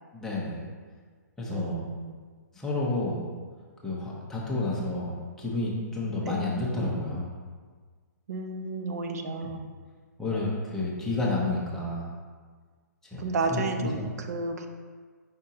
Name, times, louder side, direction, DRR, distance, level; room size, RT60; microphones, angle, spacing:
voice 1, 0.1-0.6 1.4-1.8 2.5-3.3 3.8-7.3 10.2-12.1 13.1-14.1, left 2 dB, 5° left, -6 dB, 0.8 m, -30 dB
voice 2, 1.5-2.2 6.3-6.5 8.3-9.7 13.2-14.7, right 3 dB, 60° right, 6 dB, 0.5 m, -32 dB
5.1 x 3.5 x 2.8 m, 1.5 s
hypercardioid pair, 145°, 10 cm